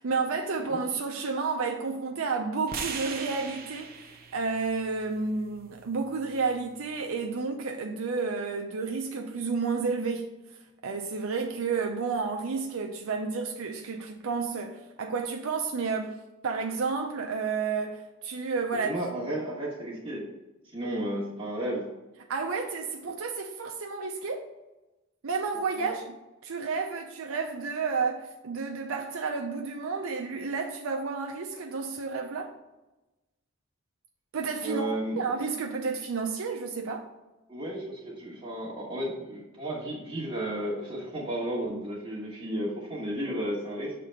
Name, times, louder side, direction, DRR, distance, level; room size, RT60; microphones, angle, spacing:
voice 1, 0.0-10.3 10.8-16.2 16.4-18.9 22.3-24.4 25.2-26.2 26.4-32.5 34.3-34.9 35.2-37.1, right 4 dB, 80° right, 0.6 m, -31 dB
sound 1, 2.7-6.9, right 5 dB, 45° right, 0.8 m, -41 dB
voice 2, 18.7-20.2 20.7-21.8 25.8-25.9 34.6-35.2 37.5-43.9, right 1 dB, 25° right, 1.2 m, -33 dB
6.6 x 3.4 x 5.1 m
head